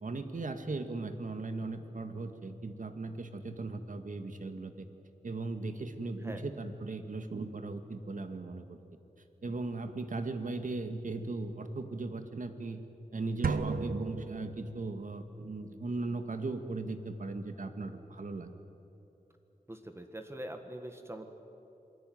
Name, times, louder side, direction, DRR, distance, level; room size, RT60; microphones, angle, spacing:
voice 1, 0.0-4.9 5.2-8.8 9.4-12.8 13.1-18.5, right 3 dB, 65° right, 8 dB, 1.9 m, -38 dB
sound 1, 13.4-15.1, right 4 dB, 90° right, 1.1 m, -34 dB
voice 2, 19.7-21.3, right 1 dB, 15° right, 6 dB, 1.7 m, -43 dB
27.5 x 21.0 x 9.4 m, 2.9 s
wide cardioid pair, 95°, 15 cm